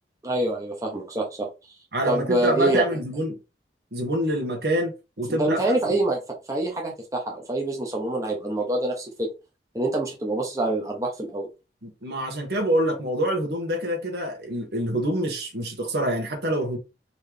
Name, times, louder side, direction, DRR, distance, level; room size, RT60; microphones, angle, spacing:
voice 1, 0.2-1.5 2.1-2.8 5.3-6.2 6.5-9.3 9.7-11.5, right 2 dB, 20° right, 1.1 m, -26 dB
voice 2, 1.9-3.3 3.9-5.6 11.8-16.8, right 1 dB, 70° right, 1.6 m, -26 dB
4.4 x 3.1 x 3.6 m
head